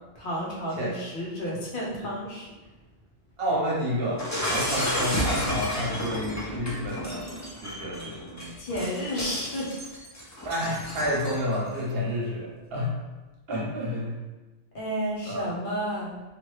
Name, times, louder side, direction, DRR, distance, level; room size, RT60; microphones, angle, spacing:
voice 1, 0.1-2.5 8.6-9.7 14.7-16.1, equal, 60° left, -4 dB, 0.8 m, -31 dB
voice 2, 3.4-4.2 4.5-7.2 7.6-8.5 10.4-13.0 13.5-14.2 15.3-15.4, equal, 70° right, -3 dB, 1.0 m, -29 dB
Shatter, 4.2-11.6, equal, 25° left, 0.4 m, -32 dB
2.9 x 2.4 x 3.1 m, 1.1 s
omnidirectional pair, 1.0 m